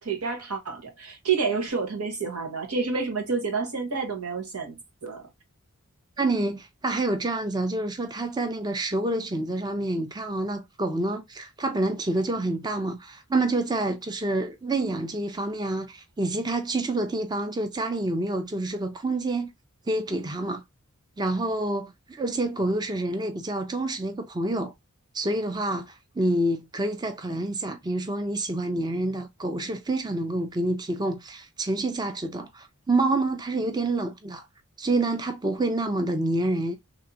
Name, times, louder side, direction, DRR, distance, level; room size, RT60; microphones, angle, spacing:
voice 1, 0.0-5.3, right 5 dB, 90° right, 1.2 m, -29 dB
voice 2, 6.2-19.5 19.9-20.6 21.2-24.7 25.1-34.4 34.8-36.8, right 2 dB, 20° right, 0.4 m, -28 dB
3.4 x 2.7 x 2.6 m
head